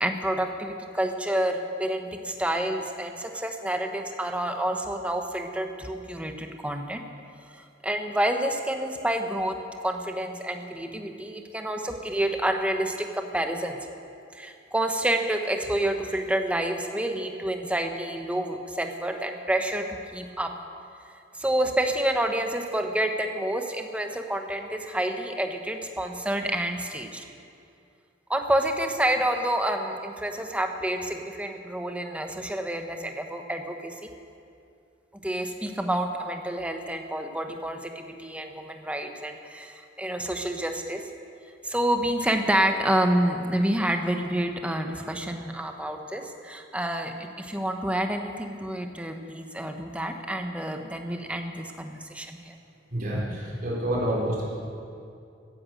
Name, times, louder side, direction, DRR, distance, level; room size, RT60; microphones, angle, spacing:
voice 1, 0.0-7.0 7.6-13.8 14.3-20.5 21.4-27.2 28.3-34.0 35.1-41.1 41.6-52.5, right 1 dB, 5° right, 4 dB, 1.0 m, -28 dB
voice 2, 52.9-54.4, right 1 dB, 50° right, -6 dB, 4.1 m, -28 dB
15.5 x 10.5 x 7.7 m, 2.5 s
head